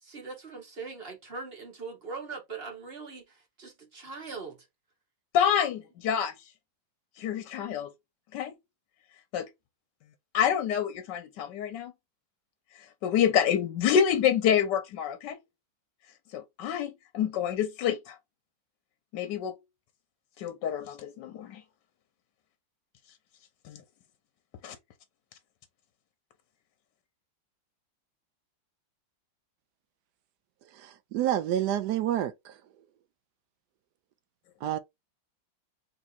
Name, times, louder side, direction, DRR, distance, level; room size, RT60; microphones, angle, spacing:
voice 1, 0.0-4.7, right 4 dB, 35° right, 1.3 m, -41 dB
voice 2, 5.3-6.3 7.2-7.9 8.3-8.5 9.3-9.5 10.3-11.9 13.0-15.4 16.3-18.2 19.1-19.6 20.4-21.6 23.6-23.8 24.6-24.8, left 8 dB, 70° left, 1.2 m, -27 dB
voice 3, 30.7-32.6 34.6-34.8, right 11 dB, 75° right, 1.0 m, -29 dB
3.5 x 2.9 x 3.9 m
omnidirectional pair, 2.0 m